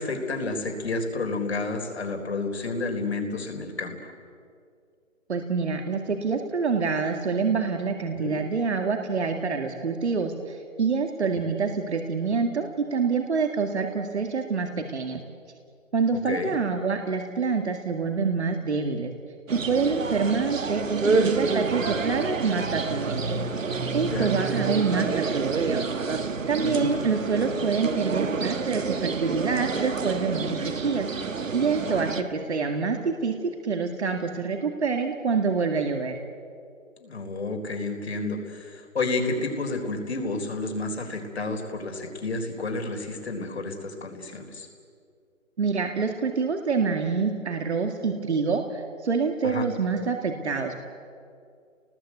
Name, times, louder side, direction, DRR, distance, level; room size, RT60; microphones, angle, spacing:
voice 1, 0.0-4.1 8.1-8.4 16.1-16.5 24.1-24.3 26.6-26.9 37.0-44.7 49.4-49.7, left 3 dB, 55° left, 4 dB, 4.0 m, -30 dB
voice 2, 5.3-15.2 15.9-19.1 19.5-23.4 23.9-25.9 26.5-36.1 45.6-50.8, right 5 dB, 55° right, 4 dB, 2.1 m, -26 dB
sound 1, 19.5-32.2, right 4 dB, 75° right, 1.7 m, -28 dB
29.0 x 20.0 x 8.3 m, 2.3 s
hypercardioid pair, 175°, 39 cm